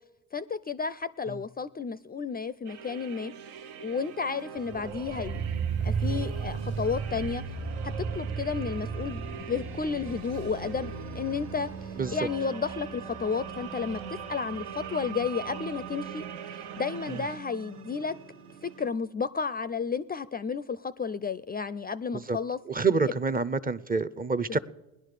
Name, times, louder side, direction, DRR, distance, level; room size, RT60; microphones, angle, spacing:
voice 1, 0.3-3.3 3.8-5.6 5.8-7.4 7.8-16.3 16.5-18.2 18.6-22.6, left 5 dB, 25° left, 0.4 m, -32 dB
sound 1, 2.6-17.4, right 8 dB, 80° right, 0.8 m, -44 dB
sound 2, 4.6-15.6 15.8-15.9, right 5 dB, 40° right, 1.4 m, -35 dB
sound 3, 5.8-18.9, right 6 dB, 60° right, 1.4 m, -43 dB
voice 2, 22.7-24.6, right 4 dB, 20° right, 0.6 m, -27 dB
17.5 x 10.5 x 6.6 m
supercardioid pair, 70°, 39 cm